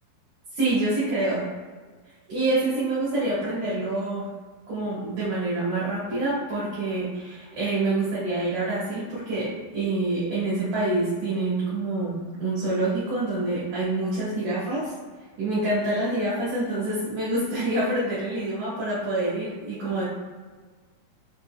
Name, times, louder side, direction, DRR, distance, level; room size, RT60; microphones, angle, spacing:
voice 1, 0.5-1.5 2.3-4.3 4.7-14.9 15.4-20.0, right 2 dB, 60° right, -10 dB, 2.5 m, -26 dB
5.7 x 3.9 x 2.2 m, 1.4 s
omnidirectional pair, 4.5 m